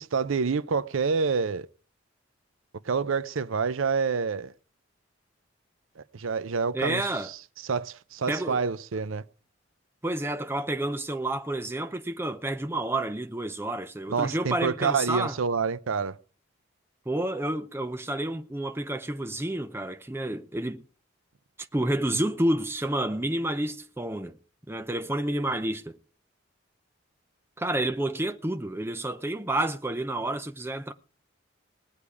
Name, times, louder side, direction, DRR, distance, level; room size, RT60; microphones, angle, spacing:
voice 1, 0.0-1.7 2.8-4.5 6.0-7.4 7.6-9.2 14.1-16.2, right 5 dB, 90° right, 0.6 m, -27 dB
voice 2, 6.7-7.3 8.3-8.6 10.0-15.4 17.1-20.8 21.7-24.4 24.7-26.0 27.6-30.9, right 1 dB, 10° right, 0.6 m, -29 dB
19.5 x 8.5 x 4.8 m
head